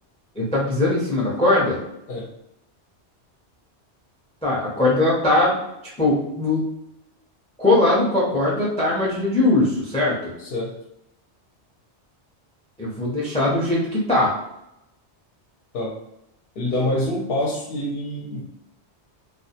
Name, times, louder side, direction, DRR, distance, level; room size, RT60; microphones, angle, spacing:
voice 1, 0.4-1.8 4.4-5.6 6.0-6.6 7.6-10.3 12.8-14.3, left 2 dB, 10° left, -6 dB, 0.3 m, -20 dB
voice 2, 10.4-10.7 15.7-15.9 16.6-18.4, left 1 dB, 65° left, -2 dB, 0.7 m, -26 dB
2.4 x 2.0 x 2.7 m, 0.83 s
omnidirectional pair, 1.2 m